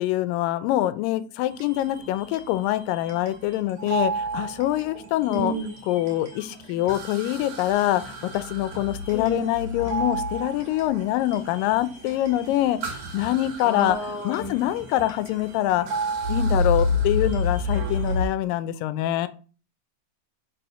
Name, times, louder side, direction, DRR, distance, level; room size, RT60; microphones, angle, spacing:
voice 1, 0.0-5.5 5.8-15.9 16.3-19.3, left 14 dB, 90° left, 14 dB, 2.3 m, -25 dB
sound 1, 1.5-18.3, equal, 60° right, 2.8 m, -31 dB
voice 2, 5.3-5.7 9.1-9.5 13.6-14.5, right 1 dB, 15° left, -1 dB, 0.6 m, -30 dB
5.4 x 4.1 x 5.5 m, 0.37 s
omnidirectional pair, 3.9 m